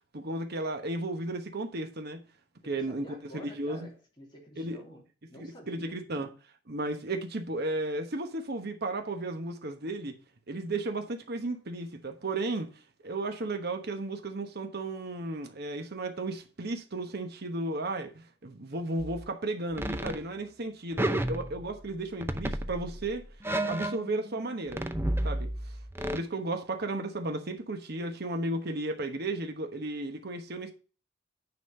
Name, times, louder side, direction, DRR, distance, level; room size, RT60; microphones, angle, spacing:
voice 1, 0.1-2.2 2.6-3.9 4.6-4.8 5.4-6.3 6.7-10.1 10.5-23.2 23.7-24.9 25.2-30.7, right 2 dB, 55° right, 1.1 m, -34 dB
voice 2, 2.6-6.0, equal, 25° left, 2.8 m, -50 dB
sound 1, 19.0-19.3 19.7-20.2 21.0-21.9 22.2-24.4 24.7-26.2, right 1 dB, 10° right, 0.6 m, -32 dB
9.7 x 4.2 x 5.3 m
head